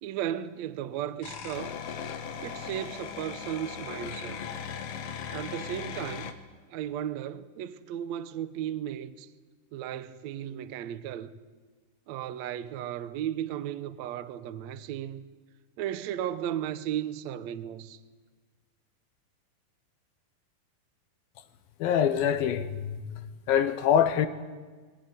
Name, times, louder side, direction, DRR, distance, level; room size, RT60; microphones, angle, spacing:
voice 1, 0.0-1.8 2.4-4.4 5.3-6.3 6.7-9.3 9.7-11.3 12.1-15.2 15.8-18.0, right 10 dB, 75° right, 1.7 m, -35 dB
sound 1, 1.2-6.3, left 7 dB, 60° left, 1.8 m, -38 dB
voice 2, 21.8-23.0 23.5-24.3, left 9 dB, 75° left, 2.8 m, -24 dB
21.0 x 19.0 x 9.5 m
omnidirectional pair, 4.3 m